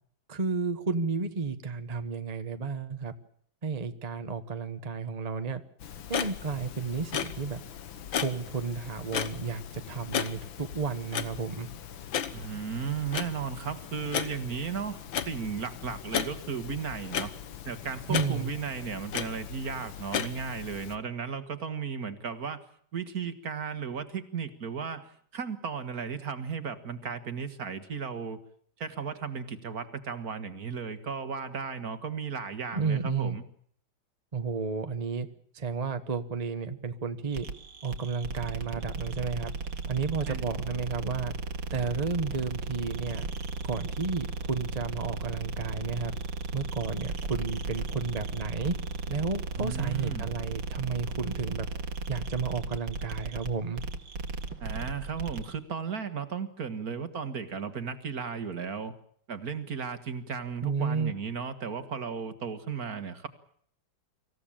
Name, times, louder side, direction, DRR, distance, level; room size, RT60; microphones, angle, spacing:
voice 1, 0.3-3.1 3.6-5.6 6.1-7.6 8.1-11.7 18.1-18.5 32.7-33.4 34.3-35.3 35.5-37.5 37.8-39.5 39.9-41.3 41.7-43.3 43.6-46.1 46.5-48.7 49.1-51.7 52.1-53.8 60.6-61.1, right 5 dB, 25° right, 9 dB, 1.0 m, -32 dB
Clock, 5.8-21.0, left 9 dB, 90° left, 2.0 m, -36 dB
voice 2, 12.3-17.3 17.7-22.6 22.9-28.4 28.8-33.4 40.3-40.4 49.6-50.3 54.6-58.9 59.3-63.3, right 6 dB, 50° right, 11 dB, 2.0 m, -35 dB
sound 1, 37.3-55.5, right 4 dB, 80° right, 2.6 m, -35 dB
25.5 x 15.5 x 8.8 m, 0.64 s
omnidirectional pair, 2.1 m